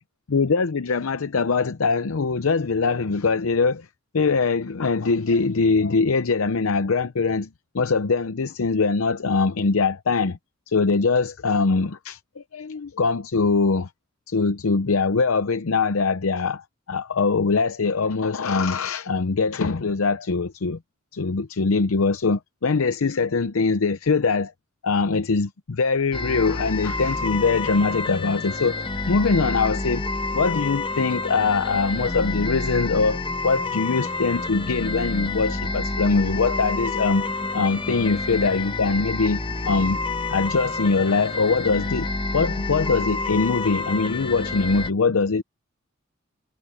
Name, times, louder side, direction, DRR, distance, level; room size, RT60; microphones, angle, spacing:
voice 1, 0.3-3.9 4.1-7.5 7.7-10.4 10.7-13.9 14.3-20.8 21.1-24.5 24.8-30.0 30.3-37.3 37.5-40.0 40.3-42.1 42.3-45.4, left 4 dB, 80° left, 0.7 m, -22 dB
sound 1, 26.1-44.9, left 3 dB, 25° left, 1.0 m, -28 dB
head